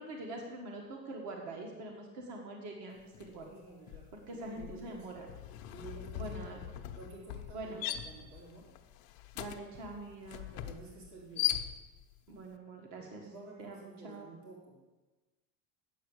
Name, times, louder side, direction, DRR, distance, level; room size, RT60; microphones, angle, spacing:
voice 1, 0.0-3.5 4.1-5.3 6.2-6.7 7.5-7.9 9.3-10.5 12.3-13.2 13.6-14.3, right 2 dB, 45° right, 1 dB, 1.7 m, -44 dB
sound 1, 3.1-3.4 3.7-12.2, left 12 dB, 60° left, 0.8 m, -40 dB
voice 2, 3.5-5.1 5.7-6.4 6.9-8.7 10.5-11.6 13.2-14.8, right 3 dB, 70° right, -4 dB, 3.4 m, -51 dB
9.3 x 7.1 x 6.6 m, 1.2 s
cardioid pair, 150°, 39 cm